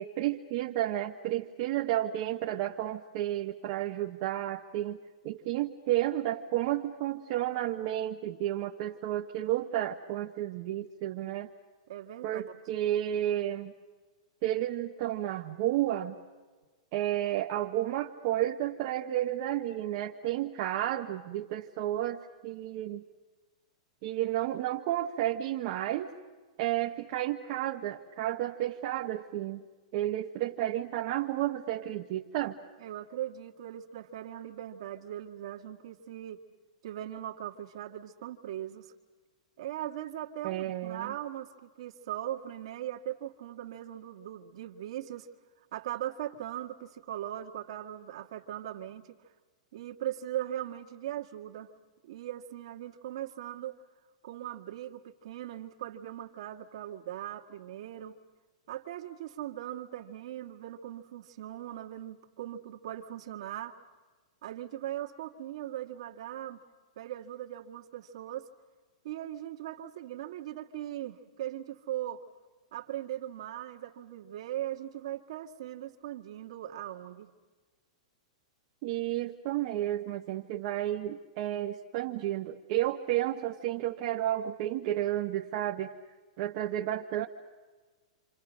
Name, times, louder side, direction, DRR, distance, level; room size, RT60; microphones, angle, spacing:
voice 1, 0.0-11.5 12.2-13.7 14.4-16.1 16.9-23.0 24.0-26.1 26.6-29.6 29.9-32.6 40.4-41.1 78.8-85.9 86.4-87.3, right 13 dB, 35° right, 1 dB, 1.0 m, -32 dB
voice 2, 11.9-12.5 32.8-36.4 36.8-38.9 39.6-45.3 45.7-49.1 49.7-51.7 52.0-53.8 54.2-58.2 58.7-63.8 64.4-66.6 67.0-68.5 69.0-72.2 72.7-77.3, right 12 dB, 55° right, 3 dB, 1.9 m, -39 dB
28.0 x 27.0 x 6.4 m, 1.4 s
supercardioid pair, 175°, 4 cm